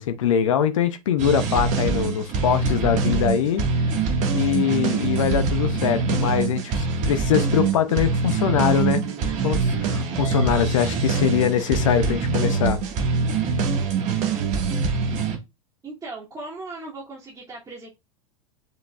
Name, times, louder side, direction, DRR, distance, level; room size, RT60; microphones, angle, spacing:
voice 1, 0.0-3.7 4.3-9.0 9.4-12.8, left 9 dB, 65° left, 1.0 m, -23 dB
sound 1, 1.2-15.4, right 4 dB, 40° right, 1.9 m, -24 dB
voice 2, 15.8-17.9, right 2 dB, 20° right, 2.8 m, -37 dB
7.5 x 5.7 x 2.5 m
figure-of-eight pair, 85°, 18 cm